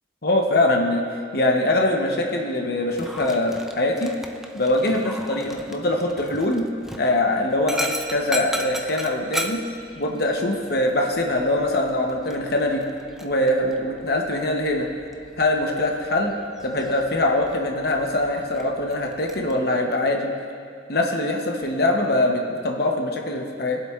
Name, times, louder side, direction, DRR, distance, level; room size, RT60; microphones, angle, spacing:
voice 1, 0.2-1.0 1.3-4.1 4.5-6.7 7.0-9.6 10.0-12.8 13.2-14.9 15.4-16.3 16.6-20.3 20.9-23.8, left 1 dB, 55° left, 1 dB, 0.9 m, -23 dB
Dog, 2.9-19.5, equal, ahead, 0.4 m, -37 dB
21.5 x 7.6 x 2.4 m, 2.4 s
head